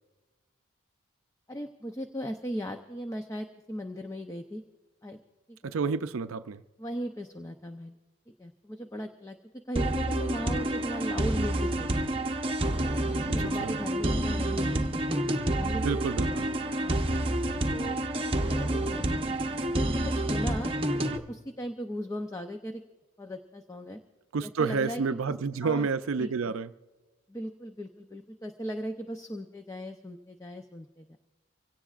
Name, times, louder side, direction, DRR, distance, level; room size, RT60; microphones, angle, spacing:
voice 1, 1.5-4.6 5.0-5.2 5.5-5.7 6.8-8.0 8.4-9.4 9.7-12.1 13.3-16.0 16.3-16.5 16.8-17.0 17.7-18.0 18.2-19.0 19.5-22.8 23.2-24.0 24.4-25.3 25.6-25.9 26.2-26.5 27.3-31.2, equal, 15° left, 0.5 m, -38 dB
voice 2, 5.6-6.6 13.6-13.8 15.7-16.8 24.3-26.7, right 5 dB, 90° right, 0.5 m, -30 dB
sound 1, 9.8-21.2, right 1 dB, 25° right, 0.8 m, -28 dB
25.0 x 17.5 x 2.4 m
head